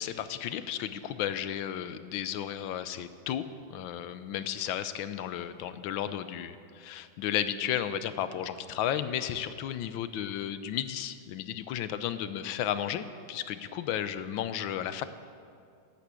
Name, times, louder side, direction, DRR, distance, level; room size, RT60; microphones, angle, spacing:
voice 1, 0.0-15.1, left 10 dB, 80° left, 12 dB, 1.4 m, -33 dB
12.5 x 8.7 x 8.2 m, 2.4 s
omnidirectional pair, 2.1 m